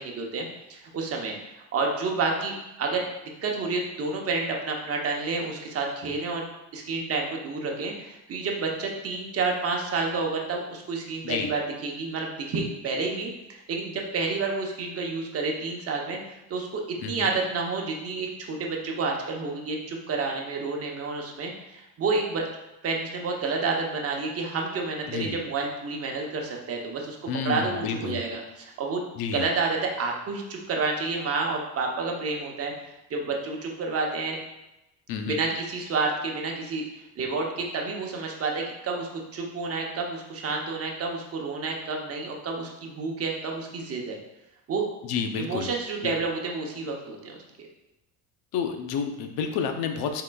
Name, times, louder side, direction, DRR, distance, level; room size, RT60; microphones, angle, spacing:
voice 1, 0.0-3.0 3.4-6.4 6.7-22.4 22.8-27.2 27.4-29.0 29.3-32.7 33.1-34.4 35.2-36.8 37.2-44.2 44.7-44.8 45.4-47.4, right 3 dB, 40° right, 0 dB, 0.7 m, -29 dB
voice 2, 17.0-17.3 25.1-25.4 27.3-28.2 29.1-29.5 35.1-35.4 45.0-45.7 46.0-46.1 48.5-50.2, left 6 dB, 70° left, 6 dB, 0.6 m, -30 dB
4.2 x 3.7 x 2.2 m, 0.93 s
cardioid pair, 115°, 38 cm